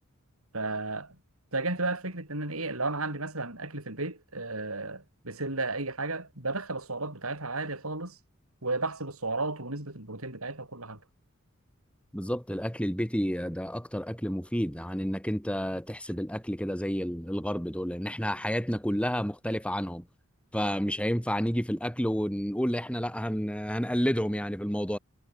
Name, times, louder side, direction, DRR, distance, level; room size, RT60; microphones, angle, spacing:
voice 1, 0.5-1.2 1.5-8.2 8.6-11.0, right 3 dB, 85° right, 7.5 m, -33 dB
voice 2, 12.1-20.0 20.5-25.0, equal, 5° left, 7.1 m, -30 dB
head